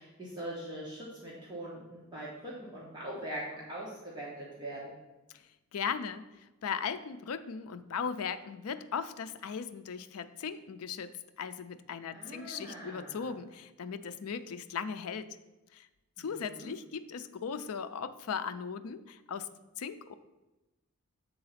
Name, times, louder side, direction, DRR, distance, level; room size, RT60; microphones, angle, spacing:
voice 1, 0.0-5.0 12.1-13.3 16.2-16.7, right 1 dB, 20° right, -6 dB, 1.2 m, -42 dB
voice 2, 5.7-15.4 15.7-15.9 16.2-19.5 19.8-20.1, left 6 dB, 80° left, 11 dB, 0.4 m, -38 dB
7.6 x 3.9 x 5.7 m, 1.1 s
head